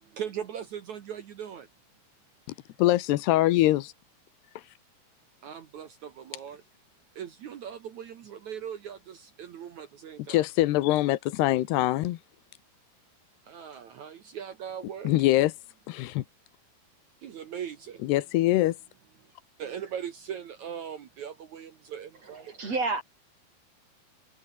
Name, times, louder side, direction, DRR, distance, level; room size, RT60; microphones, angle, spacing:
voice 1, 0.1-1.7 5.4-6.6 7.1-10.4 13.5-15.1 17.2-18.0 19.6-22.5, right 8 dB, 75° right, 1.7 m, -39 dB
voice 2, 2.8-3.9 4.6-4.7 10.3-12.2 15.0-15.5 15.9-16.2 18.0-18.8, left 16 dB, 75° left, 2.7 m, -23 dB
voice 3, 22.5-23.0, right 3 dB, 35° right, 6.1 m, -29 dB
omnidirectional pair, 5.6 m